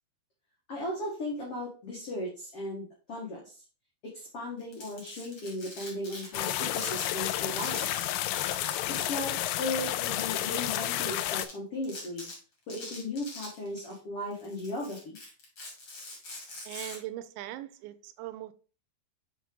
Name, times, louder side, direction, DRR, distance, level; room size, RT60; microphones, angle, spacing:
voice 1, 0.7-3.5 4.0-8.1 8.9-9.3 9.6-12.3 12.7-15.2, left 1 dB, 55° left, 1.6 m, -36 dB
Domestic sounds home sounds, 4.6-7.1 7.3-8.9 9.1-9.2 9.8-10.9 11.4-11.5 11.8-12.3 12.7-13.9 14.3-17.0, left 2 dB, 35° left, 2.2 m, -44 dB
sound 1, 6.3-11.5, left 13 dB, 90° left, 2.3 m, -31 dB
voice 2, 16.7-18.5, right 14 dB, 85° right, 2.9 m, -40 dB
5.9 x 5.8 x 3.8 m
omnidirectional pair, 5.2 m